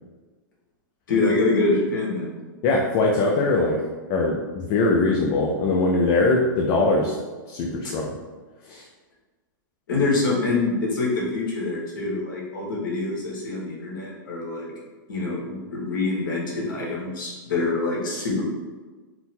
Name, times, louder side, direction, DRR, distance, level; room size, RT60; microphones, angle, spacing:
voice 1, 1.1-2.3 7.8-7.9 9.9-14.7 15.1-18.4, left 3 dB, 70° left, -3 dB, 1.4 m, -25 dB
voice 2, 2.6-3.8 4.1-7.1 7.5-8.1 8.7-8.8, left 2 dB, 35° left, -1 dB, 0.4 m, -21 dB
3.9 x 2.1 x 4.2 m, 1.3 s
hypercardioid pair, 150°, 11 cm